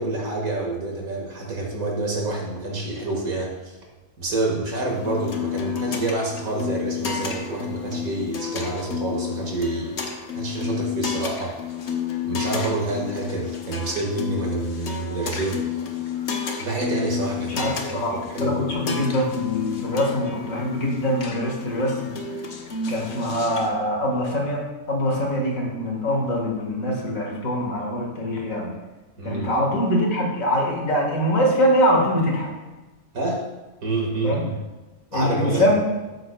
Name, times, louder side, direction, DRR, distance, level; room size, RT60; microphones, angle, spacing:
voice 1, 0.0-3.8 4.2-10.0 10.3-11.5 12.2-15.6 16.6-18.7 29.2-29.5 33.1-33.4 33.8-34.5 35.1-35.8, right 2 dB, 90° right, -1 dB, 2.4 m, -28 dB
sound 1, 4.9-23.7, left 7 dB, 55° left, 1.2 m, -31 dB
voice 2, 17.4-22.2 22.9-28.7 29.2-32.5 34.2-34.4 35.1-35.8, equal, 75° left, 0 dB, 2.2 m, -23 dB
13.0 x 7.7 x 2.3 m, 1.2 s
omnidirectional pair, 1.4 m